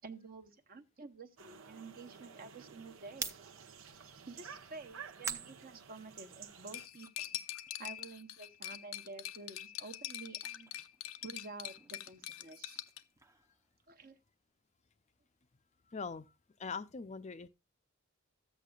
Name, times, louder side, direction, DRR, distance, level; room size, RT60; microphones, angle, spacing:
voice 1, 0.0-3.3 4.3-7.4 7.8-10.8 11.2-12.8 13.9-14.2, right 3 dB, 45° right, 0.9 m, -50 dB
sound 1, 1.4-6.9, right 7 dB, 80° right, 0.9 m, -50 dB
sound 2, 3.0-6.5 6.9-9.9 10.1-14.3, right 4 dB, 15° right, 0.6 m, -50 dB
Cutlery silverware, 6.7-13.0, left 12 dB, 85° left, 0.6 m, -44 dB
voice 2, 15.9-16.3 16.6-17.5, left 5 dB, 35° left, 0.5 m, -42 dB
13.5 x 8.4 x 2.3 m
head